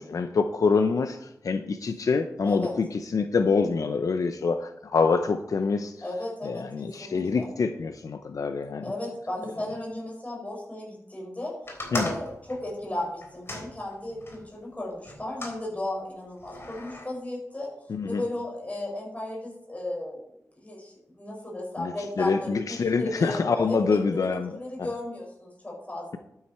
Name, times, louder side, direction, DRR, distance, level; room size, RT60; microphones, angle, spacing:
voice 1, 0.0-6.0 6.4-8.8 11.9-12.1 17.9-18.2 21.8-21.9 22.2-24.6, left 4 dB, 75° left, 8 dB, 0.7 m, -26 dB
voice 2, 6.0-7.5 8.8-11.5 11.9-17.7 18.1-20.2 20.6-26.2, left 1 dB, 25° left, -2 dB, 5.5 m, -35 dB
sound 1, 11.7-14.4 15.1-15.6 16.4-17.0, left 1 dB, 45° left, 3.6 m, -37 dB
11.5 x 9.7 x 4.4 m, 0.79 s
wide cardioid pair, 105°, 6 cm